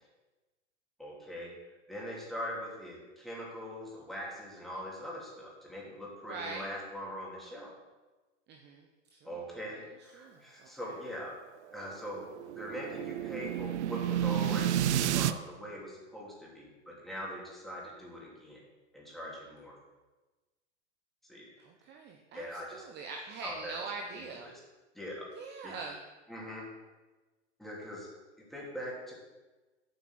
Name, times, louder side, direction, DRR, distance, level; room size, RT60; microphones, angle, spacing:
voice 1, 1.0-1.5 1.9-7.7 9.2-11.3 11.7-12.2 12.5-14.8 15.1-18.6 18.9-19.8 21.2-21.5 22.3-22.8 23.4-23.8 24.1-24.6 24.9-25.3 25.6-25.7 26.3-26.7 27.6-28.1 28.5-29.1, equal, ahead, -5 dB, 2.9 m, -42 dB
voice 2, 6.2-6.7 8.5-8.9 9.1-9.4 9.7-9.8 10.1-10.9 21.6-24.5 25.4-26.0, right 4 dB, 30° right, 2 dB, 0.9 m, -43 dB
sound 1, 12.0-15.3, right 11 dB, 70° right, 0.6 m, -30 dB
8.2 x 5.9 x 6.2 m, 1.2 s
hypercardioid pair, 115°, 35 cm